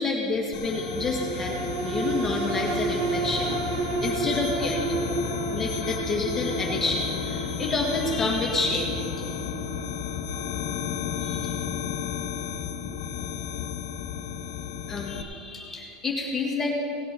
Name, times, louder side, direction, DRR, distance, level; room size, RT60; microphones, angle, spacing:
voice 1, 0.0-5.0 5.5-9.0 11.2-11.5 14.9-16.7, left 3 dB, 10° left, -2 dB, 1.6 m, -29 dB
sound 1, 0.5-15.2, left 9 dB, 65° left, 0.8 m, -33 dB
sound 2, 0.7-15.4 15.8-15.9, right 3 dB, 60° right, 1.1 m, -33 dB
18.0 x 9.0 x 4.4 m, 2.5 s
cardioid pair, 175°, 3 cm